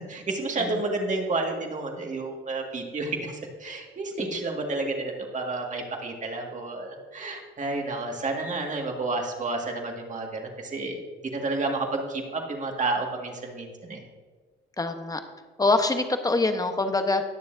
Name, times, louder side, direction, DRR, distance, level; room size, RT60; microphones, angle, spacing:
voice 1, 0.1-11.0 11.3-14.0, right 3 dB, 40° right, 1 dB, 2.0 m, -30 dB
voice 2, 14.8-15.2 15.6-17.2, left 3 dB, 20° left, 7 dB, 1.0 m, -24 dB
20.0 x 6.9 x 2.7 m, 1.4 s
cardioid pair, 90°, 20 cm